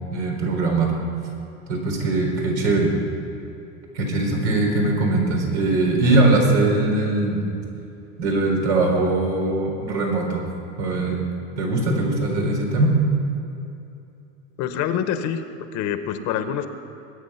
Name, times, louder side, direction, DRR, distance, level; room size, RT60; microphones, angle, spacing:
voice 1, 0.1-0.9 1.7-2.9 3.9-7.4 8.2-10.4 10.8-11.2 11.6-12.9, right 2 dB, 85° right, -1 dB, 4.3 m, -21 dB
voice 2, 14.6-15.4 15.7-16.7, left 9 dB, 55° left, 9 dB, 1.1 m, -25 dB
21.0 x 8.9 x 5.7 m, 2.7 s
supercardioid pair, 115°, 34 cm